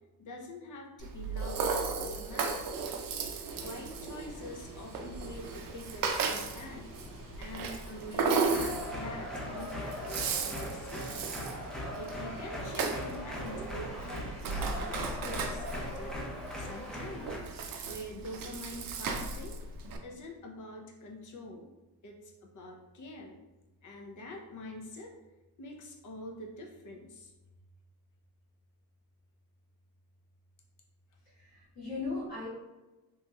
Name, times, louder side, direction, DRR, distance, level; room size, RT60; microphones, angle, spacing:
voice 1, 0.2-2.8 3.6-6.9 7.4-11.4 11.9-17.4 17.8-19.6 20.0-21.7 22.0-23.4 23.8-25.1 25.6-27.3 31.8-31.9, left 1 dB, 50° left, 0 dB, 0.6 m, -45 dB
Rattle (instrument), 1.0-20.0, right 4 dB, 55° right, 0.5 m, -36 dB
sound 1, 3.2-19.9, right 1 dB, 40° right, 0.8 m, -52 dB
sound 2, 8.5-17.4, left 1 dB, ahead, 0.4 m, -39 dB
voice 2, 31.3-32.5, left 3 dB, 70° left, -11 dB, 1.4 m, -37 dB
3.0 x 2.9 x 2.2 m, 1.1 s
cardioid pair, 130°, 40 cm